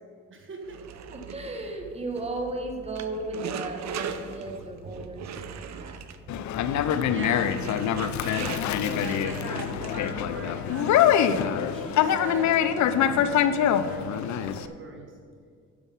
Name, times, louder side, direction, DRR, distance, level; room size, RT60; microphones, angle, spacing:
voice 1, 0.3-0.9 2.0-2.1 5.3-5.4 6.3-6.4 7.1-7.7 8.2-8.3 9.0-15.1, right 3 dB, 40° right, 3 dB, 1.2 m, -40 dB
sound 1, 0.6-10.4, right 7 dB, 65° right, 0.7 m, -39 dB
voice 2, 1.1-6.0, right 2 dB, 20° right, 2 dB, 1.3 m, -35 dB
Conversation, 6.3-14.7, left 9 dB, 70° left, 0.6 m, -24 dB
9.7 x 7.2 x 5.5 m, 2.1 s
cardioid pair, 90°, 30 cm